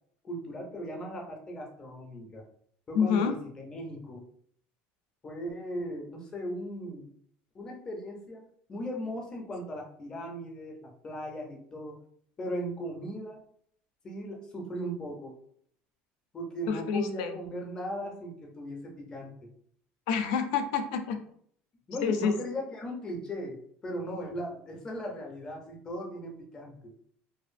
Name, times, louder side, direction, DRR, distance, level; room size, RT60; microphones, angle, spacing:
voice 1, 0.2-2.4 2.9-4.3 5.2-7.1 7.5-12.0 12.4-13.4 14.0-15.4 16.3-19.5 21.9-26.9, equal, 15° left, 1 dB, 0.5 m, -38 dB
voice 2, 2.9-3.3 16.7-17.4 20.1-21.2 22.0-22.3, left 6 dB, 75° left, 7 dB, 0.4 m, -28 dB
2.5 x 2.4 x 2.5 m, 0.64 s
cardioid pair, 165°, 4 cm